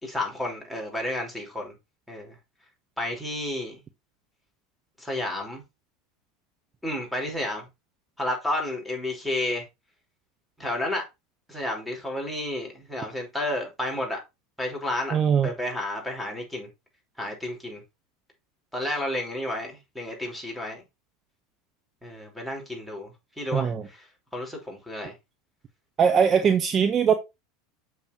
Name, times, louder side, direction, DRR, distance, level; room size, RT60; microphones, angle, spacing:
voice 1, 0.0-1.7 2.1-2.4 3.0-3.8 5.0-5.6 6.8-7.7 8.2-9.7 10.6-11.0 11.5-14.2 14.6-15.2 15.4-16.7 17.2-17.8 18.7-20.8 22.0-24.0 24.3-25.1, left 1 dB, ahead, 5.3 m, -31 dB
voice 2, 15.1-15.5 23.5-23.9 26.0-27.1, right 7 dB, 35° right, 0.9 m, -21 dB
7.2 x 6.5 x 4.4 m
figure-of-eight pair, 80°, 0 cm